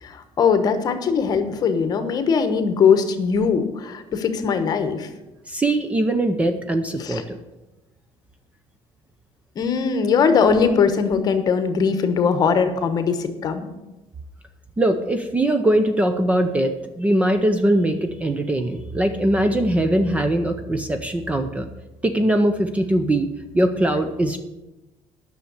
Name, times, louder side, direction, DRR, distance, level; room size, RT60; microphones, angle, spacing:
voice 1, 0.0-5.1 7.0-7.2 9.6-13.7, left 6 dB, 35° left, 9 dB, 1.1 m, -20 dB
voice 2, 5.5-7.4 14.8-21.7 22.0-23.3 23.5-24.4, right 1 dB, 10° right, 8 dB, 0.5 m, -21 dB
9.9 x 6.4 x 8.1 m, 1.0 s
cardioid pair, 165°, 11 cm